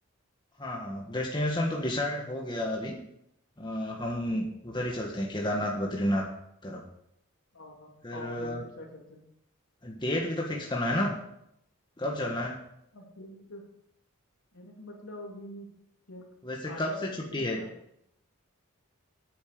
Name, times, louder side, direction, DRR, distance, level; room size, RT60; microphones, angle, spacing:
voice 1, 0.6-3.0 3.6-6.3 6.6-6.8 8.0-8.6 9.8-11.2 12.0-12.5 16.4-16.9 17.3-17.6, left 1 dB, 20° left, -1 dB, 1.5 m, -31 dB
voice 2, 7.5-9.2 12.9-13.7 14.5-15.7 16.1-16.3 16.6-17.7, left 1 dB, 75° left, 0 dB, 3.1 m, -44 dB
9.4 x 8.7 x 6.8 m, 0.77 s
head